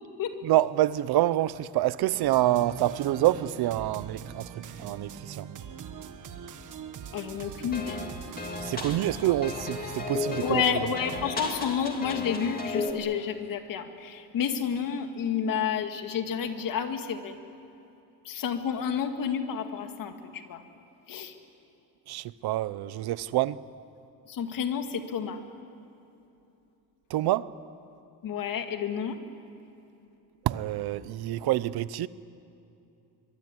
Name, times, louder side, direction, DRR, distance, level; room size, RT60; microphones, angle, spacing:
voice 1, 0.4-5.5 8.6-10.9 22.1-23.6 27.1-27.5 30.4-32.1, right 14 dB, 65° right, 0.8 m, -27 dB
sound 1, 2.1-11.3, right 7 dB, 50° right, 1.6 m, -42 dB
voice 2, 7.1-8.0 9.2-9.3 10.4-17.3 18.3-20.6 21.1-21.3 24.3-25.4 28.2-29.2, left 7 dB, 55° left, 2.1 m, -30 dB
sound 2, 7.7-12.9, left 3 dB, 20° left, 2.4 m, -35 dB
24.0 x 23.5 x 9.7 m
cardioid pair, 165°, 40 cm